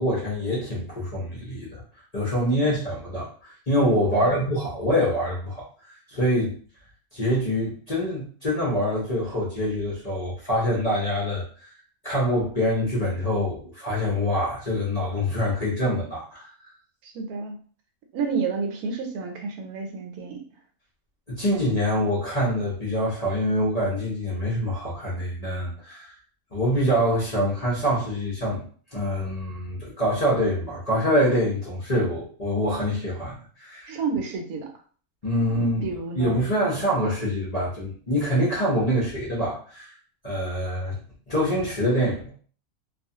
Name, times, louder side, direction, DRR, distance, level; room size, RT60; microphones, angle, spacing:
voice 1, 0.0-1.8 2.1-5.7 6.1-6.6 7.1-11.7 12.0-16.5 21.3-26.1 26.5-28.7 28.9-33.9 35.2-35.9 36.1-39.9 40.2-41.0 41.3-42.3, equal, 40° left, -6 dB, 0.6 m, -25 dB
voice 2, 4.1-4.5 17.0-17.6 18.1-20.4 33.9-34.7 35.4-36.4, right 5 dB, 85° right, 3 dB, 1.1 m, -30 dB
2.4 x 2.3 x 2.7 m, 0.44 s
omnidirectional pair, 1.5 m